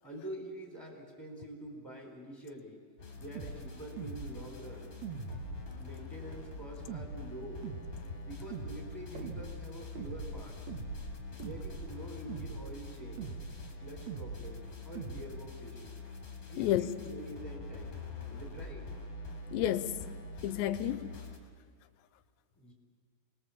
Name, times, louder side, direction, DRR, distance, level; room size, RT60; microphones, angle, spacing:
voice 1, 0.0-2.8 3.1-5.0 5.8-7.7 8.2-10.6 11.4-13.4 13.8-16.0 16.5-18.9 22.5-22.7, right 1 dB, 5° left, 0 dB, 3.7 m, -46 dB
sound 1, 3.0-21.4, left 3 dB, 20° left, 2.8 m, -45 dB
sound 2, 3.4-3.6 4.0-4.4 5.0-5.7 6.9-7.2 7.6-8.0 8.5-8.9 9.1-9.5 10.0-10.4 10.7-11.1 11.4-11.8 12.3-12.6 13.2-13.6 14.1-14.4 15.0-15.2, right 5 dB, 80° right, 1.6 m, -41 dB
voice 2, 16.6-16.9 19.5-20.1 20.4-21.2, left 12 dB, 80° left, 11 dB, 2.8 m, -31 dB
28.0 x 21.0 x 7.4 m, 2.1 s
omnidirectional pair, 5.5 m